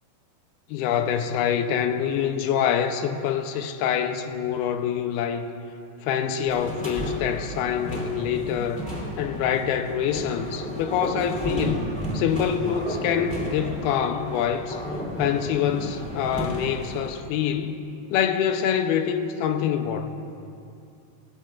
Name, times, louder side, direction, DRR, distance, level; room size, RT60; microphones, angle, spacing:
voice 1, 0.7-5.5 6.0-8.9 9.2-11.9 12.1-14.8 15.2-17.9 18.1-20.1, left 8 dB, 80° left, 7 dB, 2.5 m, -25 dB
sound 1, 6.5-17.1, equal, ahead, 1.9 m, -33 dB
22.5 x 18.5 x 2.4 m, 2.5 s
omnidirectional pair, 4.6 m